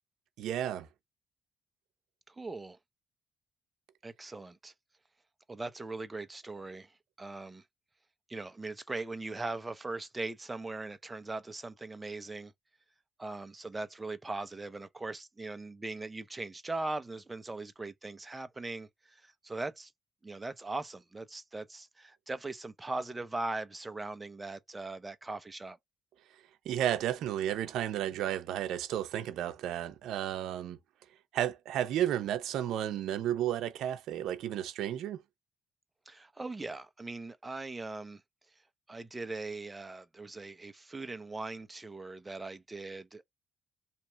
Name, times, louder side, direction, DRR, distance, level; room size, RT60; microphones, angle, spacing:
voice 1, 0.4-0.9 26.7-30.8 31.3-35.2, right 11 dB, 85° right, 0.6 m, -32 dB
voice 2, 2.3-2.8 4.0-4.7 5.5-7.6 8.3-12.5 13.2-19.9 20.2-25.8 36.1-38.2 38.9-43.3, right 2 dB, 20° right, 0.6 m, -40 dB
2.9 x 2.5 x 4.3 m
cardioid pair, 90°, 0 cm